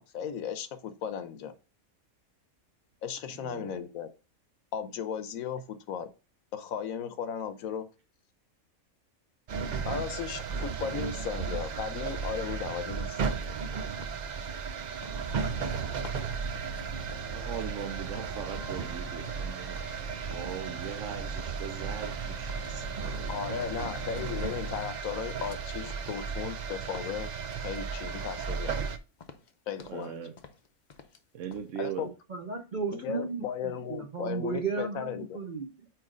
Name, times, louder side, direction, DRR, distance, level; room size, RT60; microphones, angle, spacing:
voice 1, 0.0-1.5 3.0-4.1 4.7-6.1 6.5-7.9 9.8-13.5 23.3-27.3 27.6-28.8 29.7-30.2 31.8-32.1 32.9-35.4, left 7 dB, 75° left, 1.1 m, -36 dB
voice 2, 3.3-3.9 15.9-16.4 17.3-23.8 29.8-30.3 31.3-32.1, right 8 dB, 65° right, 1.0 m, -40 dB
sound 1, 9.5-29.0, right 6 dB, 80° right, 0.4 m, -35 dB
sound 2, 14.0-17.9 18.1-20.0 20.3-21.1 21.4-22.2 22.5-24.5 24.7-28.4 28.7-28.9 29.2-30.1 30.4-31.2 31.5-31.7, left 5 dB, 45° left, 0.6 m, -53 dB
sound 3, 15.2-24.9, right 1 dB, 15° right, 1.6 m, -45 dB
voice 3, 32.3-35.9, right 4 dB, 45° right, 0.7 m, -34 dB
8.7 x 3.1 x 3.8 m
omnidirectional pair, 1.5 m